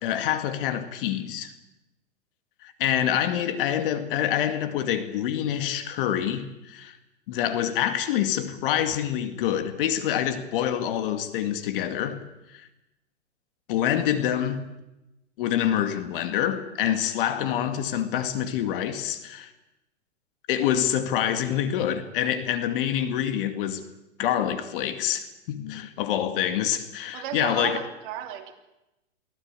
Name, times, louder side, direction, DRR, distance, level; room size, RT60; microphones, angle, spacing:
voice 1, 0.0-1.5 2.6-7.0 7.3-12.2 12.5-12.7 13.7-14.6 15.4-19.5 20.5-23.8 24.2-27.8, left 10 dB, 45° left, 2.2 m, -26 dB
voice 2, 27.1-28.5, right 11 dB, 45° right, 3.4 m, -34 dB
23.5 x 16.0 x 9.0 m
hypercardioid pair, 145°, 36 cm